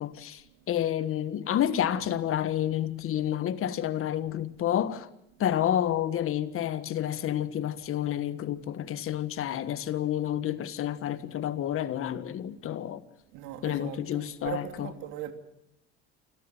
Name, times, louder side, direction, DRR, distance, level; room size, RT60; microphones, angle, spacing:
voice 1, 0.0-5.1 5.4-13.0 13.6-14.9, left 11 dB, 40° left, 1.6 m, -29 dB
voice 2, 13.3-15.3, right 12 dB, 65° right, 2.9 m, -39 dB
28.0 x 13.0 x 9.1 m
supercardioid pair, 120°, 33 cm